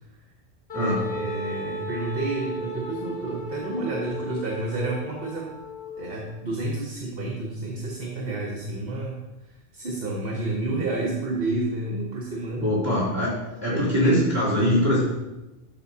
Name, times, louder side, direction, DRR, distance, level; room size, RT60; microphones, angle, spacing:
Wind instrument woodwind instrument, 0.7-6.3, left 1 dB, 60° left, 1.8 m, -35 dB
voice 1, 0.7-5.5 6.0-9.2 9.5-12.7 13.7-14.2, right 2 dB, 65° right, -2 dB, 1.2 m, -30 dB
voice 2, 12.6-13.3 13.6-15.0, left 1 dB, 15° right, -9 dB, 2.7 m, -22 dB
12.5 x 5.2 x 2.7 m, 1.0 s
omnidirectional pair, 1.1 m